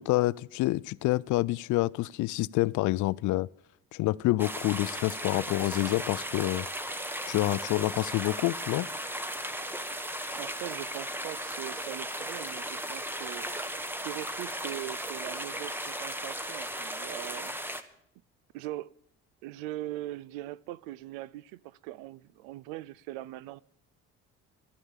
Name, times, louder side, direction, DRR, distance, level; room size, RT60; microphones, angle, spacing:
voice 1, 0.0-3.5 3.9-6.7 7.3-8.9, left 18 dB, 65° left, 0.5 m, -27 dB
sound 1, 4.4-17.8, right 1 dB, 5° right, 1.1 m, -36 dB
voice 2, 10.4-13.6 14.0-17.6 18.5-18.9 19.4-23.6, right 15 dB, 90° right, 0.5 m, -41 dB
11.5 x 11.0 x 7.2 m
supercardioid pair, 80°, 33 cm